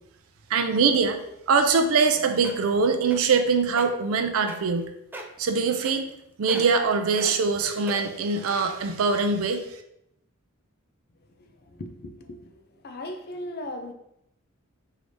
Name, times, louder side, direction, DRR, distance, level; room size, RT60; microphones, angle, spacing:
voice 1, 0.5-1.2 1.5-4.9 5.4-6.1 6.4-9.6, right 4 dB, 80° right, 0.4 m, -23 dB
sound 1, 2.4-2.7 3.1-3.4 3.7-3.9 4.5-4.8 5.1-5.4 5.8-6.2 6.5-6.8 7.2-7.3 7.9-8.2 8.9-9.0, right 1 dB, 10° right, 0.4 m, -38 dB
voice 2, 11.4-13.9, left 1 dB, 50° left, 0.5 m, -38 dB
4.7 x 2.7 x 3.2 m
head